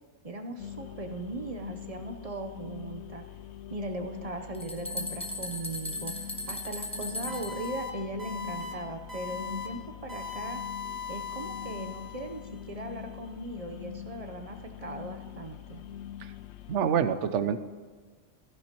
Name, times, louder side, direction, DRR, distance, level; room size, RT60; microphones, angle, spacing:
voice 1, 0.2-3.2 3.7-10.6 11.1-15.8, right 1 dB, 35° right, 5 dB, 0.8 m, -38 dB
sound 1, 0.6-16.8, left 11 dB, 75° left, 0.8 m, -44 dB
sound 2, 4.2-7.7, left 1 dB, 5° left, 1.0 m, -37 dB
sound 3, 7.3-7.9 8.2-8.7 9.1-9.7 10.1-12.4, left 5 dB, 60° right, 2.6 m, -39 dB
voice 2, 16.7-17.6, right 8 dB, 90° right, 11 dB, 1.0 m, -26 dB
16.5 x 12.5 x 3.0 m, 1.5 s
omnidirectional pair, 1.2 m